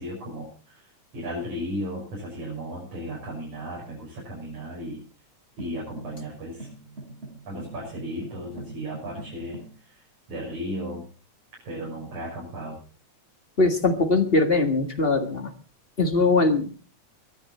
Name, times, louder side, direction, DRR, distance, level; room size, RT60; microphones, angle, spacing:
voice 1, 0.0-5.0 5.6-6.7 7.5-11.1 11.6-12.8, equal, 80° right, -4 dB, 7.7 m, -35 dB
sound 1, 5.6-9.8, right 2 dB, 20° right, 5.9 m, -43 dB
voice 2, 13.6-15.5 16.0-16.7, left 3 dB, 25° left, 5 dB, 1.4 m, -21 dB
23.0 x 11.0 x 4.3 m, 0.37 s
omnidirectional pair, 3.4 m